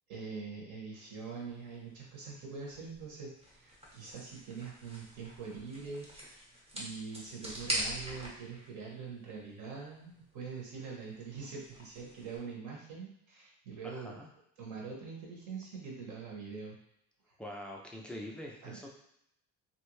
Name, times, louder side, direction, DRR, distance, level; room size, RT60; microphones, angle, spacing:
voice 1, 0.1-6.4 6.7-14.2 14.6-16.8 18.6-18.9, right 5 dB, 55° right, -2 dB, 1.2 m, -44 dB
sound 1, 1.1-12.4, equal, 15° right, 0.9 m, -44 dB
voice 2, 13.8-14.3 17.4-18.9, left 1 dB, 5° left, -2 dB, 0.3 m, -44 dB
3.1 x 2.7 x 3.1 m, 0.76 s
cardioid pair, 140°, 36 cm